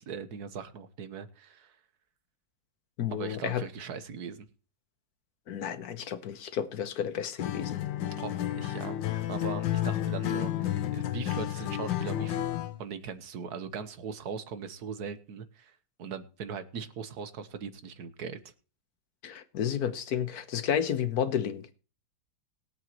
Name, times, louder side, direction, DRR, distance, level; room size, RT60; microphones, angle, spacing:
voice 1, 0.0-1.7 3.1-4.5 8.1-9.0 9.3-12.5 12.8-18.4, right 6 dB, 60° right, 1.5 m, -40 dB
voice 2, 3.0-3.6 5.5-7.8 19.2-21.7, left 9 dB, 60° left, 1.4 m, -31 dB
Acoustic guitar, 7.4-12.8, left 12 dB, 80° left, 1.5 m, -31 dB
21.5 x 7.8 x 3.0 m
omnidirectional pair, 2.0 m